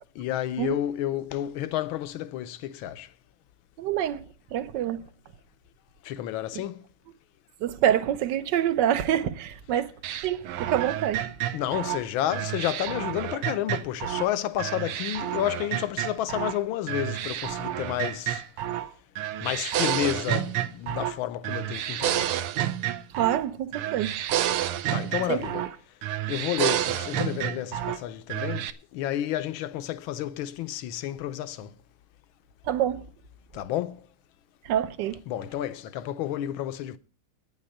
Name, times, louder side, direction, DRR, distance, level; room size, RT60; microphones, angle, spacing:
voice 1, 0.2-3.1 6.0-6.8 11.5-18.4 19.4-22.3 24.9-25.7 26.3-28.7 28.9-31.7 33.5-34.0 35.3-37.0, left 12 dB, 75° left, 1.5 m, -30 dB
voice 2, 3.8-4.2 4.5-5.0 6.5-6.6 7.6-9.9 10.2-11.3 23.2-24.1 25.3-25.4 32.7-33.0 34.7-35.2, right 10 dB, 65° right, 1.2 m, -26 dB
sound 1, 10.0-14.3 14.6-16.6 16.9-18.9 19.2-21.2 21.4-23.5 23.7-25.7 26.0-28.0 28.3-28.7, right 12 dB, 85° right, 1.6 m, -30 dB
9.5 x 6.6 x 8.5 m
omnidirectional pair, 2.4 m